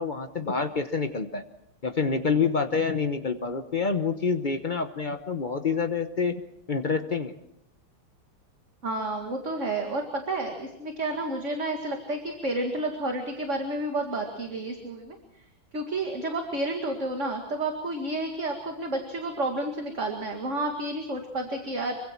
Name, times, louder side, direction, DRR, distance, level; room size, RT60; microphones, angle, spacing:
voice 1, 0.0-1.4 1.8-6.4 6.7-7.3, left 5 dB, 60° left, 7 dB, 0.4 m, -27 dB
voice 2, 8.8-15.2 15.7-21.9, right 2 dB, 35° right, 3 dB, 2.3 m, -30 dB
26.5 x 24.5 x 4.5 m, 0.76 s
omnidirectional pair, 2.4 m